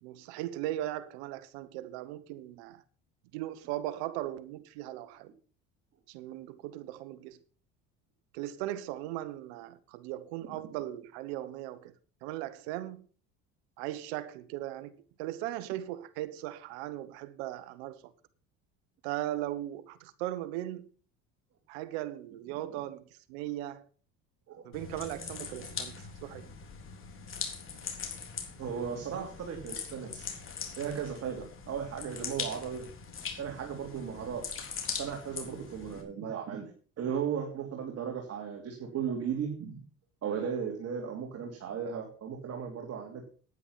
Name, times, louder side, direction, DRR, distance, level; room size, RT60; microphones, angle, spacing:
voice 1, 0.0-2.8 3.3-5.3 6.1-7.4 8.3-11.9 12.2-13.0 13.8-18.1 19.0-20.9 21.7-23.9 24.6-26.5, right 14 dB, 85° right, 1.2 m, -38 dB
sound 1, 24.7-36.0, left 6 dB, 40° left, 3.7 m, -41 dB
voice 2, 28.6-30.3 30.8-32.9 33.4-34.4 35.0-36.6 37.0-39.8 40.2-43.3, right 7 dB, 50° right, 3.1 m, -36 dB
10.0 x 9.8 x 5.7 m
supercardioid pair, 90°, 32 cm